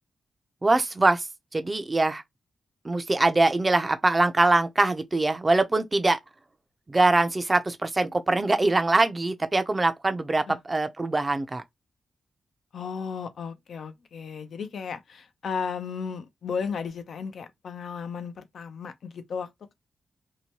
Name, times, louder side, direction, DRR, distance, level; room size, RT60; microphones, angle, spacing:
voice 1, 0.6-1.3 1.5-2.2 2.8-6.2 6.9-11.6, right 2 dB, 25° right, 0.5 m, -23 dB
voice 2, 12.7-19.7, left 6 dB, 75° left, 0.5 m, -34 dB
2.8 x 2.2 x 2.9 m
cardioid pair, 100°, 0 cm